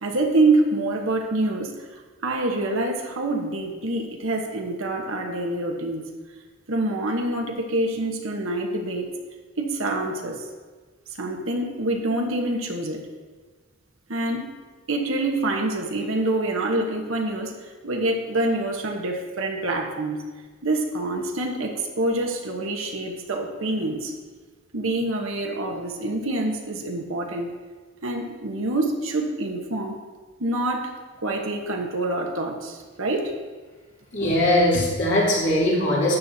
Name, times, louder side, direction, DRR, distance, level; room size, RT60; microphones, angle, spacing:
voice 1, 0.0-1.7 2.2-6.1 6.7-9.1 9.6-10.4 11.2-13.0 14.1-14.5 14.9-17.5 17.8-20.2 20.6-24.1 24.7-27.5 28.0-30.0 30.4-30.9 31.2-33.3, right 2 dB, 70° right, 2 dB, 1.2 m, -26 dB
voice 2, 34.1-36.2, left 1 dB, 55° left, -7 dB, 3.0 m, -20 dB
12.5 x 8.6 x 2.8 m, 1.4 s
head